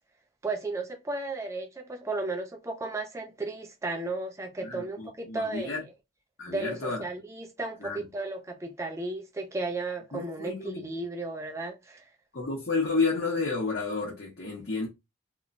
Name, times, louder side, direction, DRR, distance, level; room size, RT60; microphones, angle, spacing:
voice 1, 0.4-5.8 6.5-12.0, right 2 dB, 15° right, 0.3 m, -34 dB
voice 2, 4.6-5.8 6.4-7.0 7.8-8.1 10.1-10.8 12.3-14.9, left 4 dB, 55° left, 0.8 m, -31 dB
2.9 x 2.1 x 2.5 m
head